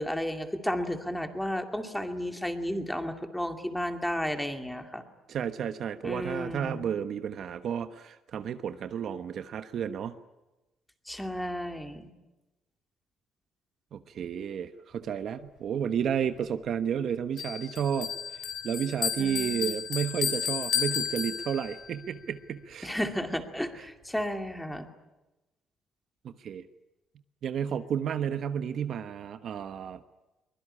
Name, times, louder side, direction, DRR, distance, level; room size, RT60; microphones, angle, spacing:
voice 1, 0.0-5.0 6.0-6.9 11.1-12.1 19.2-19.7 22.8-24.9, equal, 5° left, 6 dB, 2.4 m, -33 dB
voice 2, 5.3-10.2 13.9-22.9 23.7-23.8 26.2-26.6 27.4-30.0, right 8 dB, 55° right, 10 dB, 1.2 m, -32 dB
Bell, 17.4-21.9, left 8 dB, 70° left, 4.8 m, -32 dB
23.5 x 22.0 x 10.0 m, 1.0 s
cardioid pair, 135°, 0 cm